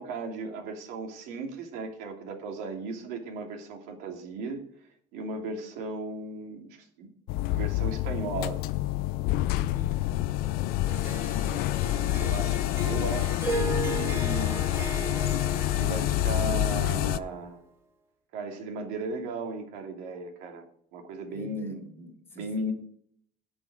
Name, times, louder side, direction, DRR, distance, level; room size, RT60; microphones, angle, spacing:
voice 1, 0.0-4.6 5.1-7.1 7.5-8.6 12.2-14.7 15.8-17.6 18.3-20.7 20.9-22.7, right 3 dB, 90° right, 3 dB, 2.9 m, -36 dB
sound 1, 7.3-17.2, left 15 dB, 70° left, 0.5 m, -27 dB
voice 2, 9.5-10.9 12.1-12.9 21.3-21.8 22.3-22.5, left 3 dB, 15° left, 3 dB, 1.7 m, -46 dB
Harp, 10.9-17.2, right 3 dB, 15° right, 2.2 m, -36 dB
18.0 x 6.2 x 4.9 m, 0.63 s
cardioid pair, 165°, 16 cm